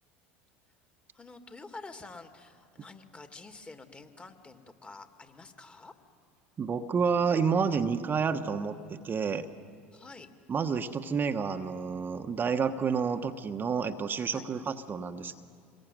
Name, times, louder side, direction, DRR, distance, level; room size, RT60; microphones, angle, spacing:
voice 1, 1.1-5.9 9.9-10.3 14.3-14.5, left 3 dB, 20° left, 6 dB, 2.5 m, -48 dB
voice 2, 6.6-9.4 10.5-15.4, right 6 dB, 30° right, 7 dB, 1.2 m, -29 dB
26.5 x 21.5 x 9.3 m, 2.3 s
hypercardioid pair, 75°, 6 cm